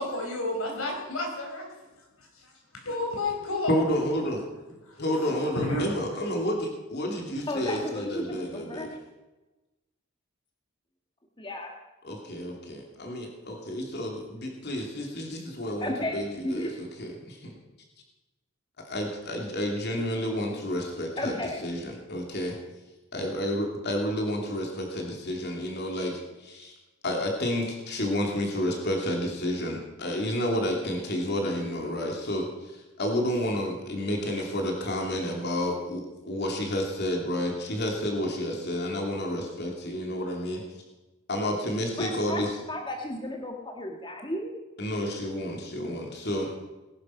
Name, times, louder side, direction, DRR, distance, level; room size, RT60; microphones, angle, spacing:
voice 1, 0.0-1.8 2.2-3.8 4.9-5.2 5.6-5.9, left 2 dB, 80° left, 1 dB, 4.7 m, -31 dB
voice 2, 3.7-4.4 5.0-8.9 12.0-17.6 18.8-21.3 21.6-22.6 23.1-26.7 27.0-40.6 41.3-42.5 44.8-46.5, left 1 dB, 50° left, 1 dB, 3.0 m, -30 dB
voice 3, 7.5-9.0 11.4-11.7 15.8-16.7 21.2-21.6 42.0-44.5, left 1 dB, 20° left, 2 dB, 1.5 m, -34 dB
20.0 x 11.0 x 5.8 m, 1.1 s
head